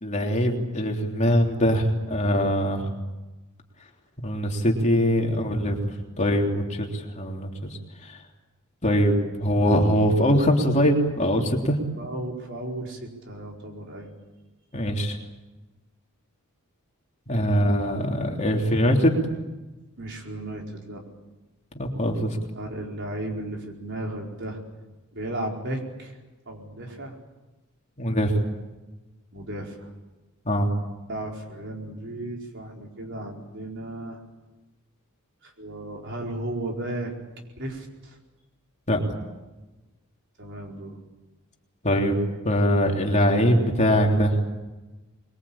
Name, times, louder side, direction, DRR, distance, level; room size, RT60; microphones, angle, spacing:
voice 1, 0.0-2.9 4.2-5.9 6.2-8.2 8.8-11.8 14.7-15.2 17.3-19.4 21.8-22.4 28.0-28.4 30.5-30.7 38.9-39.0 41.8-42.2 42.5-44.4, equal, 35° left, 1 dB, 3.3 m, -22 dB
voice 2, 12.0-14.1 20.0-21.0 22.5-24.6 25.1-26.2 26.5-27.2 29.3-29.9 31.1-34.2 35.4-37.1 37.6-38.2 40.4-41.0, right 1 dB, 55° right, 1 dB, 4.7 m, -34 dB
25.0 x 22.0 x 8.7 m, 1.1 s
head